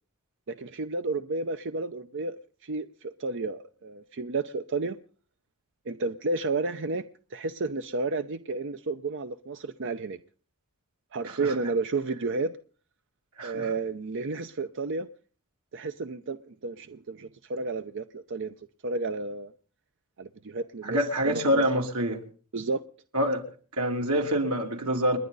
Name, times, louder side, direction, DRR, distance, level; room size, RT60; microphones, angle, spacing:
voice 1, 0.5-5.0 5.9-7.0 7.3-10.2 11.1-12.5 13.4-15.1 15.7-19.5 20.2-21.6 22.5-22.8, right 3 dB, 60° right, 0.7 m, -32 dB
voice 2, 13.4-13.7 20.8-22.2 23.1-23.4 23.7-25.2, equal, 85° right, 3.1 m, -26 dB
30.0 x 10.5 x 4.0 m
head